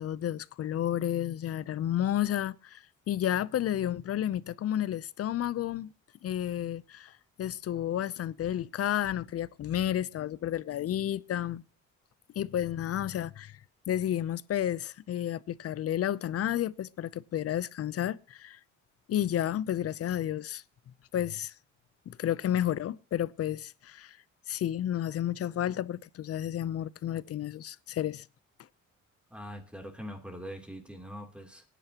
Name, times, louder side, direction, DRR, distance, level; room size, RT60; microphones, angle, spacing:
voice 1, 0.0-5.9 6.2-7.1 7.4-11.6 12.4-13.6 13.9-18.6 19.1-20.6 21.1-21.5 22.1-24.2 24.5-28.2, left 11 dB, 50° left, 0.6 m, -31 dB
voice 2, 29.3-31.6, equal, 5° right, 3.1 m, -42 dB
23.5 x 10.0 x 2.9 m
cardioid pair, 90°, 30 cm